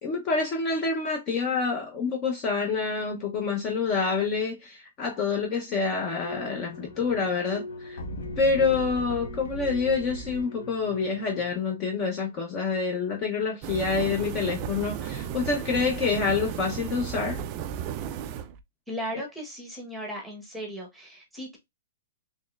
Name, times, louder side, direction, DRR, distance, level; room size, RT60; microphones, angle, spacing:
voice 1, 0.0-8.0 8.4-17.4, left 4 dB, 25° left, 0.7 m, -27 dB
sound 1, 6.2-11.6, left 1 dB, 65° left, 1.0 m, -39 dB
sound 2, 13.6-18.6, right 9 dB, 30° right, 0.3 m, -34 dB
voice 2, 18.9-21.6, equal, ahead, 1.0 m, -36 dB
4.1 x 3.1 x 2.4 m
hypercardioid pair, 165°, 0 cm